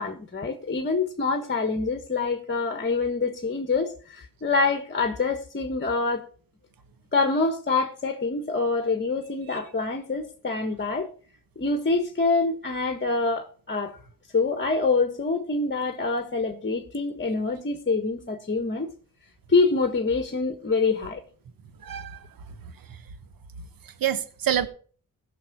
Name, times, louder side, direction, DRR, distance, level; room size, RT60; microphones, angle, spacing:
voice 1, 0.0-6.2 7.1-11.1 11.6-14.0 14.3-18.9 19.5-21.2, left 3 dB, 30° left, 1.5 m, -26 dB
voice 2, 21.8-22.6 22.9-23.0 23.8-24.7, right 10 dB, 75° right, 1.2 m, -29 dB
16.5 x 6.3 x 6.1 m
cardioid pair, 80°, 35 cm